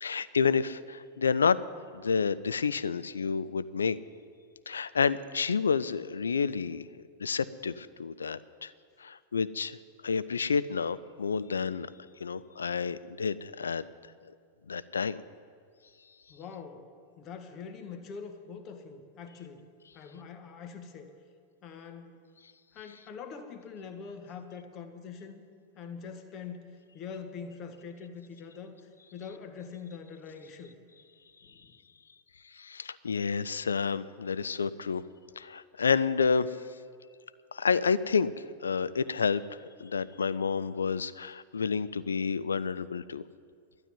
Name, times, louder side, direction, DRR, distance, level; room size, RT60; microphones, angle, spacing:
voice 1, 0.0-1.6 1.9-4.0 4.7-6.9 7.2-8.7 9.0-9.8 10.0-11.9 12.2-13.8 14.2-14.3 14.7-15.2 32.4-35.0 35.4-36.6 37.5-39.4 39.8-43.2, left 5 dB, 70° left, 15 dB, 0.4 m, -29 dB
voice 2, 16.3-16.9 17.2-19.6 19.9-21.1 21.6-22.2 22.7-25.4 25.7-28.8 29.1-30.8 31.4-31.8, left 6 dB, 35° left, 6 dB, 1.4 m, -44 dB
12.5 x 9.0 x 9.5 m, 2.3 s
figure-of-eight pair, 90°, 0 cm